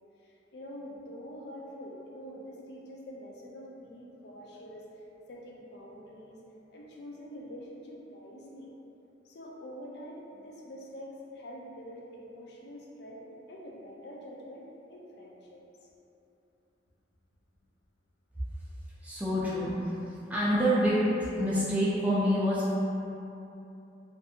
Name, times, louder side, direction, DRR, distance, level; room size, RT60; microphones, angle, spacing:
voice 1, 0.2-6.4 6.7-8.7 9.2-15.6, equal, 60° left, -2 dB, 0.4 m, -46 dB
voice 2, 19.0-20.0 20.3-21.0 21.4-22.7, equal, 10° right, -9 dB, 0.3 m, -27 dB
2.6 x 2.4 x 2.6 m, 2.9 s
head